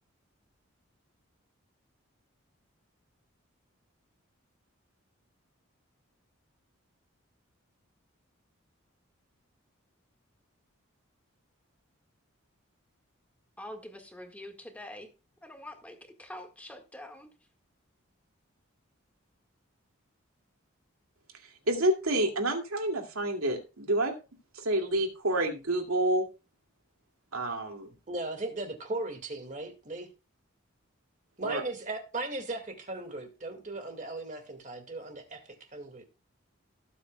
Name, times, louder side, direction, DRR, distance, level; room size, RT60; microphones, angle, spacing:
voice 1, 13.6-15.1 15.4-17.3, left 1 dB, 5° left, 4 dB, 1.7 m, -45 dB
voice 2, 21.7-24.1 24.5-26.3 27.3-27.9 31.4-31.6, right 1 dB, 90° right, 3 dB, 2.5 m, -28 dB
voice 3, 28.1-30.1 31.4-35.4 35.7-36.1, right 2 dB, 35° right, 5 dB, 2.1 m, -37 dB
18.0 x 8.3 x 2.3 m, 0.30 s
head